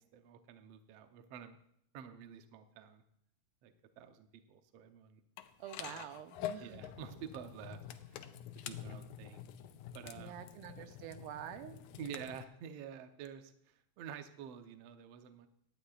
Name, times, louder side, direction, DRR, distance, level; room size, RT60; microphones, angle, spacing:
voice 1, 0.0-1.6 1.9-3.0 3.6-5.2 6.6-7.8 8.1-8.2 8.6-9.5 9.9-10.4 12.0-15.5, right 8 dB, 70° right, 7 dB, 1.6 m, -49 dB
sound 1, 5.4-12.4, left 10 dB, 85° left, 2.0 m, -47 dB
voice 2, 5.6-6.9 10.1-11.9, right 10 dB, 90° right, 9 dB, 2.4 m, -47 dB
17.5 x 11.5 x 2.4 m, 0.72 s
omnidirectional pair, 3.6 m